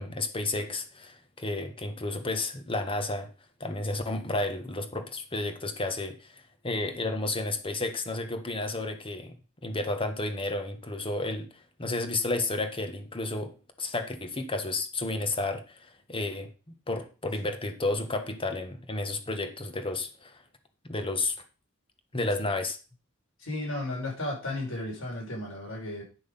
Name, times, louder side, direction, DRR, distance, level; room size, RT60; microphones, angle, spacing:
voice 1, 0.0-3.3 3.6-9.3 9.6-16.5 16.9-20.4 20.8-21.3 22.1-22.8, left 2 dB, 25° left, 7 dB, 1.5 m, -32 dB
voice 2, 23.4-26.0, left 1 dB, 80° left, -2 dB, 5.8 m, -34 dB
10.0 x 6.3 x 5.6 m, 0.34 s
head